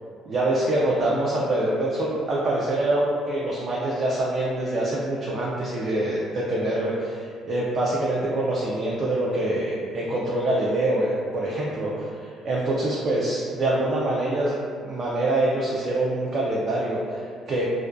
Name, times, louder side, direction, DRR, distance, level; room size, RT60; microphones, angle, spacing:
voice 1, 0.3-14.6 14.8-17.6, right 1 dB, 45° right, -5 dB, 0.3 m, -25 dB
2.3 x 2.2 x 2.5 m, 2.2 s
cardioid pair, 100°, 0 cm